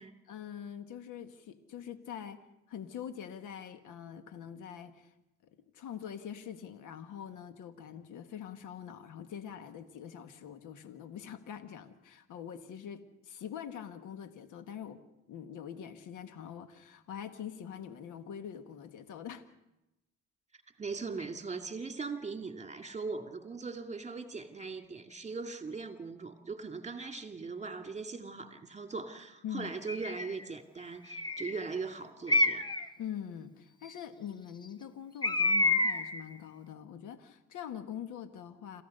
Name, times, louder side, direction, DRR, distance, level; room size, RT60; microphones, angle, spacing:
voice 1, 0.3-2.4 2.7-5.1 5.4-15.0 15.3-19.4 29.4-29.7 33.0-38.8, left 9 dB, 80° left, 10 dB, 1.5 m, -44 dB
voice 2, 20.8-32.7, right 4 dB, 25° right, 6 dB, 2.3 m, -40 dB
Bird, 29.9-30.3 31.1-31.6 32.3-32.9 35.2-36.2, left 2 dB, 15° left, 1.0 m, -28 dB
27.5 x 15.0 x 6.7 m, 0.92 s
cardioid pair, 90°, 30 cm